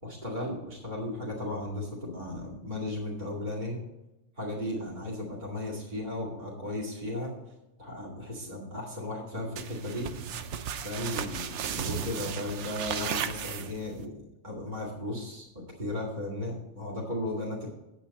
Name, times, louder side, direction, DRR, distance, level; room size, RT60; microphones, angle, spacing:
voice 1, 0.0-3.8 4.4-7.3 7.8-10.1 10.8-15.5 15.8-17.7, left 1 dB, 40° right, -3 dB, 2.6 m, -35 dB
sound 1, 9.6-14.0, right 8 dB, 80° right, 1.0 m, -35 dB
9.2 x 8.4 x 4.2 m, 0.93 s
omnidirectional pair, 1.2 m